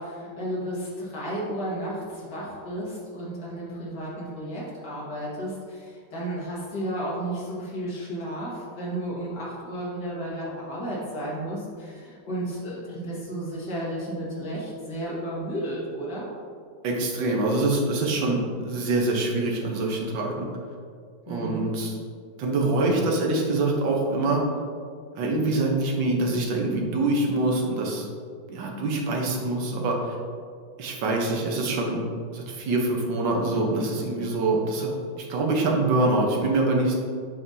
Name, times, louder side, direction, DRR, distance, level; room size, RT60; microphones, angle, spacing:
voice 1, 0.0-16.2 21.3-21.7, right 1 dB, 55° left, -6 dB, 2.3 m, -33 dB
voice 2, 16.8-20.5 21.3-22.0 22.4-24.4 25.1-28.1 28.5-30.1 30.8-32.0 32.3-34.9 35.2-36.9, right 2 dB, 65° right, -1 dB, 1.6 m, -25 dB
6.9 x 5.6 x 2.7 m, 2.2 s
omnidirectional pair, 2.2 m